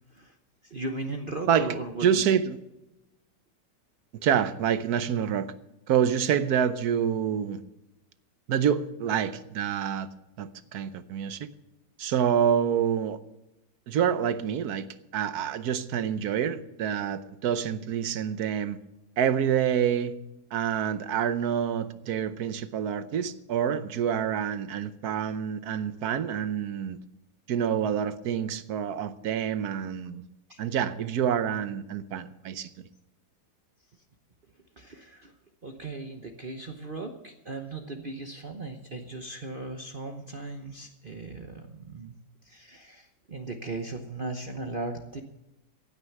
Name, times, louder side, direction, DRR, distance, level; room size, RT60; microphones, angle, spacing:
voice 1, 0.6-2.2 30.5-30.6 34.8-35.3 35.6-42.1 42.4-45.2, right 2 dB, 35° right, 0.9 m, -37 dB
voice 2, 2.0-2.6 4.2-5.5 5.9-7.6 8.5-10.1 10.4-11.5 12.0-13.2 13.9-14.9 15.1-18.8 19.2-20.1 20.5-27.0 27.5-30.2 30.6-32.7, right 8 dB, 65° right, 1.2 m, -27 dB
15.5 x 9.7 x 6.0 m
omnidirectional pair, 1.9 m